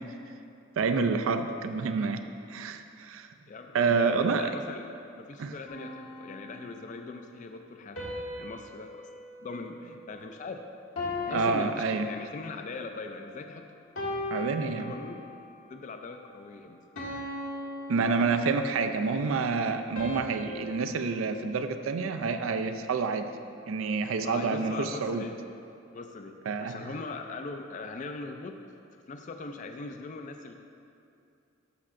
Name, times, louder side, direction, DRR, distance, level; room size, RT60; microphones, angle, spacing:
voice 1, 0.8-3.3 3.7-4.5 5.4-5.5 11.3-12.1 14.3-14.9 17.9-23.3 23.7-25.3 26.5-26.8, right 4 dB, 85° right, 8 dB, 0.4 m, -28 dB
voice 2, 3.5-9.1 9.4-10.6 11.3-13.7 14.8-15.3 15.7-16.8 24.2-25.4 25.9-28.6 29.1-30.5, left 3 dB, 40° left, 5 dB, 0.3 m, -40 dB
sound 1, 5.7-7.0 8.0-10.5 11.0-12.7 13.2-13.5 14.0-15.5 16.0-16.3 17.0-18.9 20.0-22.3, left 2 dB, 80° left, 1.6 m, -39 dB
11.5 x 6.4 x 2.5 m, 2.6 s
head